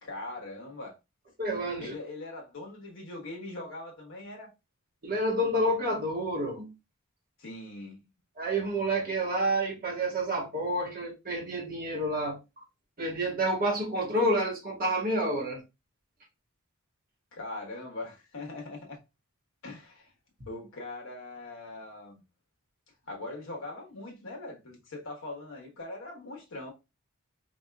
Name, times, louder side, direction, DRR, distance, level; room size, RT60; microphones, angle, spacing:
voice 1, 0.0-0.9 1.8-4.5 7.4-8.0 17.3-19.0 19.6-20.1 20.5-22.2 23.1-26.7, left 2 dB, 65° left, 1.1 m, -41 dB
voice 2, 1.4-1.9 5.0-6.7 8.4-12.4 13.0-15.6, right 1 dB, 45° right, 1.3 m, -29 dB
4.5 x 2.9 x 2.2 m
head